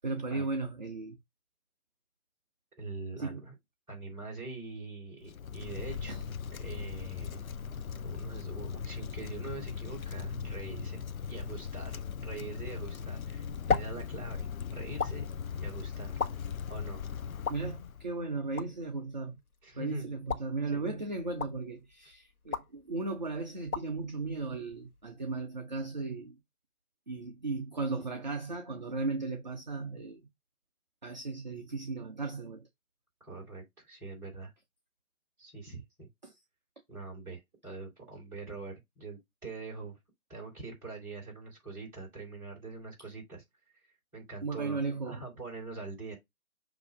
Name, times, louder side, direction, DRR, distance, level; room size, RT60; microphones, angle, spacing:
voice 1, 0.0-1.2 3.2-3.4 6.1-6.2 17.5-19.4 19.8-26.3 27.1-30.2 31.0-32.7 36.2-36.3 44.4-45.2, right 3 dB, 30° right, 0.6 m, -36 dB
voice 2, 2.8-3.5 3.9-6.3 6.6-7.4 7.9-15.2 15.5-16.1 16.7-17.0 19.6-20.1 20.5-21.0 33.2-34.5 35.4-36.1 36.9-40.0 40.3-43.4 44.1-46.2, right 3 dB, 5° right, 3.1 m, -44 dB
Wind, 5.2-18.1, left 7 dB, 70° left, 0.6 m, -39 dB
sound 1, 16.2-25.2, left 5 dB, 85° left, 1.3 m, -39 dB
6.7 x 2.8 x 5.1 m
figure-of-eight pair, 155°, 43 cm